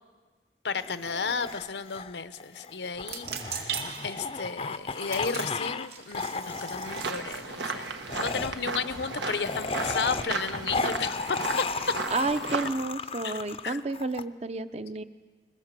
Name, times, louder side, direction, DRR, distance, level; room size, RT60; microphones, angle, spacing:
voice 1, 0.6-11.6 13.2-13.4 13.6-13.8, left 5 dB, 85° left, 12 dB, 0.9 m, -33 dB
sound 1, 0.8-5.9 6.1-7.1 8.1-14.2, left 4 dB, 35° left, 0.6 m, -35 dB
sound 2, 3.0-8.3, right 7 dB, 70° right, 2.2 m, -40 dB
sound 3, 6.8-12.7, right 3 dB, 90° right, 1.5 m, -35 dB
voice 2, 12.1-15.0, right 3 dB, 35° right, 11 dB, 0.7 m, -31 dB
22.0 x 19.0 x 7.5 m, 1.4 s
head